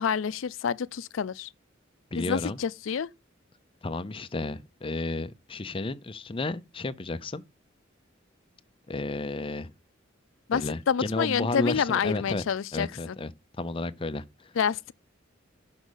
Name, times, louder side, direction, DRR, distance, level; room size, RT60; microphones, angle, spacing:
voice 1, 0.0-1.5 2.2-3.1 10.5-13.2 14.6-14.9, left 7 dB, 75° left, 0.4 m, -28 dB
voice 2, 2.1-2.6 3.8-7.4 8.9-9.7 10.5-12.4 12.7-13.3 13.6-14.5, left 2 dB, 25° left, 0.6 m, -32 dB
6.3 x 5.3 x 6.3 m
head